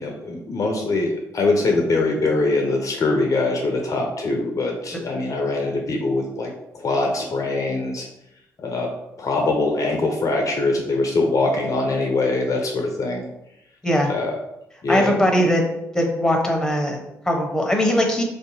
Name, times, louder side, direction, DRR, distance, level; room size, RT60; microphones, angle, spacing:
voice 1, 0.0-8.1 8.6-8.9 9.2-13.2 14.1-14.4 14.8-15.2, left 2 dB, 45° left, 2 dB, 0.6 m, -23 dB
voice 2, 14.9-15.6 15.9-18.2, equal, 5° left, 1 dB, 0.9 m, -20 dB
3.3 x 2.7 x 2.6 m, 0.85 s
hypercardioid pair, 45°, 8 cm